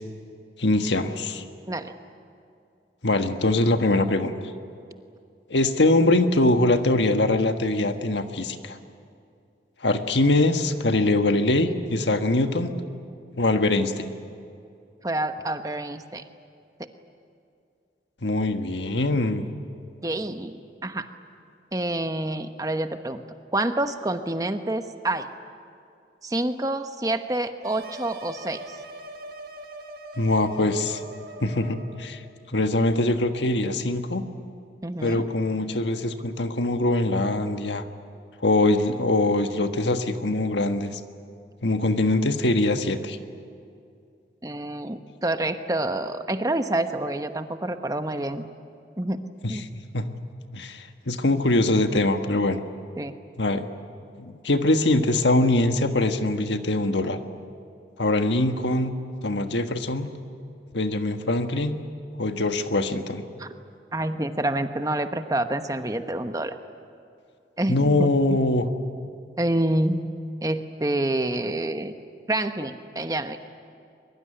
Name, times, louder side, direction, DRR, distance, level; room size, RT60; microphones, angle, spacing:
voice 1, 0.6-1.4 3.0-4.3 5.5-8.8 9.8-12.7 13.4-14.1 18.2-19.5 30.2-31.0 31.4-32.2 32.5-34.2 35.0-37.8 38.4-41.0 41.6-43.2 49.4-50.1 50.5-52.6 53.4-53.7 54.2-57.2 58.0-58.9 59.2-60.1 60.7-61.8 62.2-63.2 67.7-68.7, left 2 dB, 90° left, 7 dB, 1.5 m, -23 dB
voice 2, 15.0-16.2 16.8-16.9 20.0-20.5 20.8-21.1 21.7-23.2 23.5-25.3 26.2-28.8 34.8-35.3 44.4-48.5 49.0-49.2 49.5-49.6 53.0-53.1 63.4-63.5 63.9-66.5 67.6-68.1 69.4-70.1 70.4-72.0 72.3-73.4, right 1 dB, 20° right, 8 dB, 1.0 m, -27 dB
sound 1, 27.6-32.1, right 1 dB, 55° right, 2.0 m, -41 dB
23.0 x 22.5 x 10.0 m, 2.5 s
head